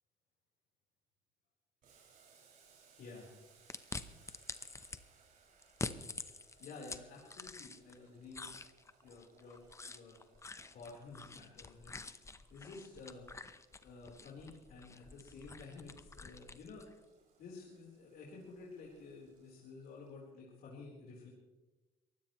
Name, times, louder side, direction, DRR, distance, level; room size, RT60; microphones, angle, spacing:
Boiling, 1.8-20.2, right 5 dB, 55° right, 6.0 m, -69 dB
voice 1, 3.0-3.3 6.6-8.5 9.0-10.3 10.7-12.1 12.5-13.3 13.8-16.9 17.4-21.3, left 4 dB, 65° left, -3 dB, 4.1 m, -52 dB
sound 1, 3.7-5.0 5.6-8.0 8.3-16.9, left 3 dB, 15° left, 0.8 m, -47 dB
22.5 x 16.5 x 3.1 m, 1.1 s
cardioid pair, 110°, 17 cm